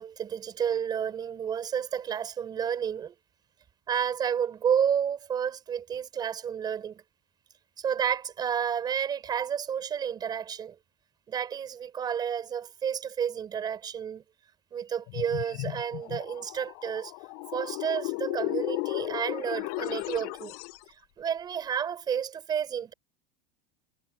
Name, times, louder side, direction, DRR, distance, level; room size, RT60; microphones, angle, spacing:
voice 1, 0.0-3.1 3.9-7.0 7.8-10.7 11.3-14.2 14.7-17.1 17.5-20.5 21.2-22.9, right 8 dB, 20° right, 5.9 m, -31 dB
sound 1, 15.1-20.8, left 36 dB, 50° left, 7.8 m, -35 dB
supercardioid pair, 180°, 21 cm